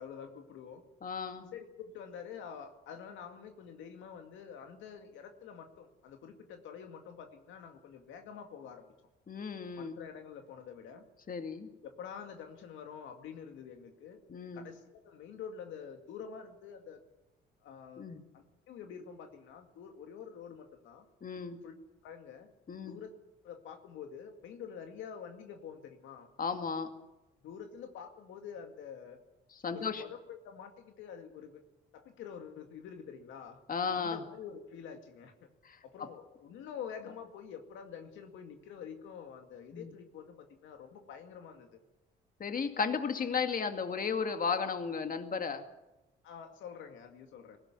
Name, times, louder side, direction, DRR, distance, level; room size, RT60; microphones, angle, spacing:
voice 1, 0.0-0.8 1.5-8.9 9.7-11.1 11.8-14.2 14.5-17.0 17.6-18.0 18.3-21.1 21.6-21.7 22.0-22.5 22.9-23.1 23.4-26.3 27.4-29.2 29.7-31.6 31.9-33.6 33.9-35.5 35.8-41.7 46.2-47.6, left 7 dB, 85° left, 5 dB, 2.2 m, -47 dB
voice 2, 1.0-1.5 9.3-10.0 11.3-11.7 14.3-14.7 18.0-18.2 21.2-21.6 22.7-23.0 26.4-26.9 29.6-30.0 33.7-34.2 35.6-36.1 39.7-39.9 42.4-45.6, left 5 dB, 45° left, 7 dB, 2.2 m, -34 dB
19.0 x 16.0 x 9.5 m, 0.99 s
cardioid pair, 70°, 20 cm